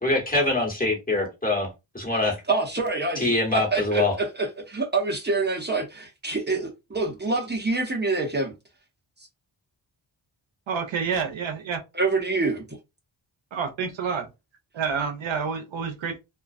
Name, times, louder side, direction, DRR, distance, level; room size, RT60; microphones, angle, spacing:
voice 1, 0.0-1.7 1.9-2.3 3.2-4.1, left 2 dB, 20° left, 1.3 m, -24 dB
voice 2, 2.5-8.5 11.9-12.6, right 3 dB, 20° right, 0.8 m, -26 dB
voice 3, 10.7-11.8 13.5-14.3 14.7-16.2, right 6 dB, 75° right, 0.7 m, -28 dB
2.4 x 2.2 x 2.4 m
cardioid pair, 50°, 47 cm